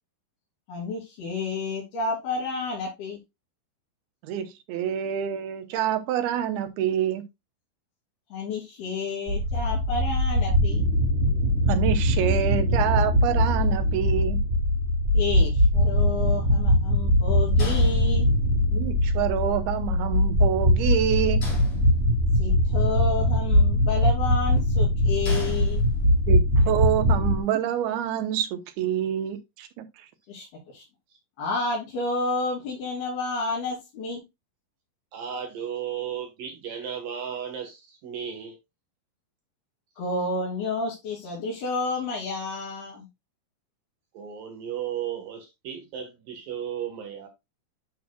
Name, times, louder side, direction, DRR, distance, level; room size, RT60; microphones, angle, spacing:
voice 1, 0.7-3.2 8.3-10.8 15.1-18.3 22.4-25.8 30.3-30.8 31.4-34.2 40.0-43.1, left 3 dB, 85° left, 5.0 m, -30 dB
voice 2, 4.2-7.2 11.7-14.4 18.7-21.4 26.3-29.9, right 10 dB, 90° right, 2.9 m, -27 dB
sound 1, 9.3-27.4, left 1 dB, 25° right, 1.8 m, -22 dB
sound 2, 17.6-18.7 21.4-22.4 25.2-26.4, left 3 dB, 45° left, 4.1 m, -37 dB
voice 3, 35.1-38.6 44.1-47.3, right 8 dB, 70° right, 3.0 m, -34 dB
11.0 x 5.9 x 2.3 m
omnidirectional pair, 4.4 m